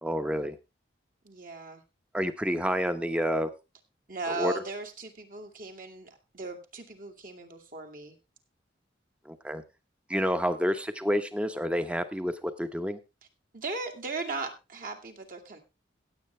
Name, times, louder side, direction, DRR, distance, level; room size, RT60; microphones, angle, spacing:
voice 1, 0.0-0.6 2.1-3.5 4.3-4.5 9.2-9.6 10.1-13.0, equal, 5° right, 10 dB, 1.0 m, -29 dB
voice 2, 1.2-1.8 4.1-8.1 13.5-15.6, right 3 dB, 50° right, 5 dB, 2.2 m, -37 dB
16.5 x 8.3 x 3.3 m, 0.27 s
head